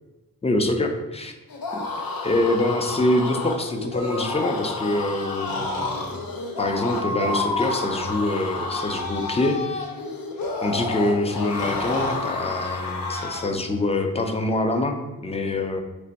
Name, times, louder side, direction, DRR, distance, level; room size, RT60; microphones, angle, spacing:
voice 1, 0.4-1.3 1.7-1.8 2.2-6.2 6.6-9.9 10.6-15.0 15.2-15.8, left 2 dB, 20° left, 5 dB, 0.4 m, -25 dB
sound 1, 1.5-13.6, left 3 dB, 80° left, 0.7 m, -31 dB
Breathing, 4.0-4.7 5.5-6.1 7.0-7.9 8.8-9.2 10.4-10.5 10.7-10.9 11.5-12.2, left 2 dB, 55° left, 1.3 m, -30 dB
3.3 x 3.3 x 3.9 m, 1.1 s
wide cardioid pair, 140°, 35 cm